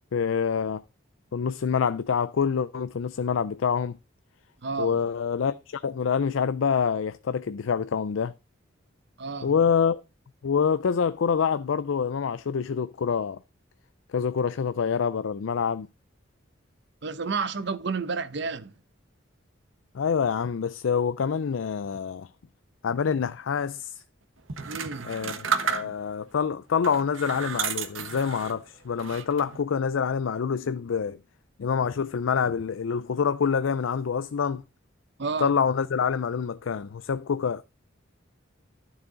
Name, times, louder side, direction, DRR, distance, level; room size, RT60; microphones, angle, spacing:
voice 1, 0.1-0.8 1.3-4.0 4.8-8.3 9.4-10.0 10.4-13.4 14.1-15.9 19.9-22.3 22.8-24.0 25.0-31.2 31.6-34.6 35.4-37.6, left 6 dB, 80° left, 0.4 m, -26 dB
voice 2, 4.6-5.0 9.2-9.5 17.0-18.7 24.7-25.1 25.8-25.9 35.2-35.5, right 4 dB, 60° right, 0.8 m, -31 dB
sound 1, 24.5-26.2 26.8-28.6 29.0-29.6, right 6 dB, 90° right, 1.2 m, -32 dB
12.0 x 7.1 x 3.9 m
head